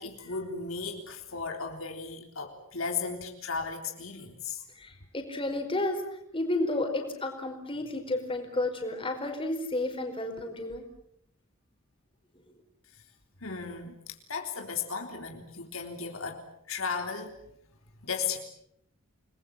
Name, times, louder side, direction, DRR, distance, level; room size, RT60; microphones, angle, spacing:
voice 1, 0.0-4.6 13.4-16.4 16.7-17.3 18.0-18.4, left 5 dB, 75° left, 3 dB, 3.6 m, -35 dB
voice 2, 4.7-6.0 6.3-10.8, left 2 dB, 25° left, 4 dB, 4.8 m, -31 dB
29.5 x 21.0 x 7.6 m, 0.72 s
head